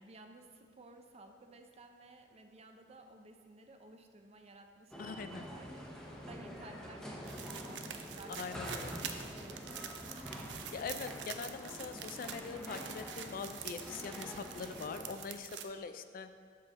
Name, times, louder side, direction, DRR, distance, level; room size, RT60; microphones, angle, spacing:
voice 1, 0.0-9.9, right 2 dB, 35° right, 5 dB, 0.5 m, -56 dB
sound 1, 4.9-15.2, equal, 5° left, 0.8 m, -46 dB
voice 2, 5.0-5.5 8.4-8.9 10.7-16.3, left 5 dB, 55° left, 9 dB, 0.3 m, -43 dB
sound 2, 7.2-15.6, right 8 dB, 90° right, 0.5 m, -46 dB
7.5 x 5.7 x 3.6 m, 2.1 s
head